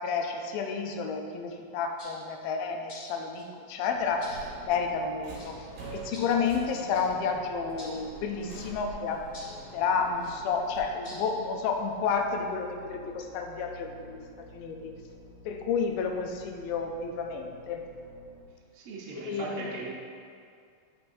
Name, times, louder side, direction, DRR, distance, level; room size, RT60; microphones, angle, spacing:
voice 1, 0.0-4.3 4.6-5.6 5.9-9.3 9.7-14.9 15.5-17.8 19.2-19.8, left 5 dB, 90° left, 3 dB, 2.4 m, -31 dB
sound 1, 2.0-2.1 2.9-3.4 4.2-4.4 5.3-5.6 6.1-6.3 6.9-7.1 7.8-7.9 8.5-8.7 9.3-9.6 10.2-10.4 11.0-11.2, left 1 dB, 30° left, 1.5 m, -47 dB
sound 2, 3.9-18.4, left 2 dB, 60° left, 2.8 m, -52 dB
Subway metro underground, 4.2-10.8, right 3 dB, 65° right, 1.5 m, -45 dB
voice 2, 18.7-19.9, right 3 dB, 85° right, -4 dB, 1.3 m, -38 dB
10.0 x 5.6 x 2.6 m, 2.3 s
omnidirectional pair, 4.0 m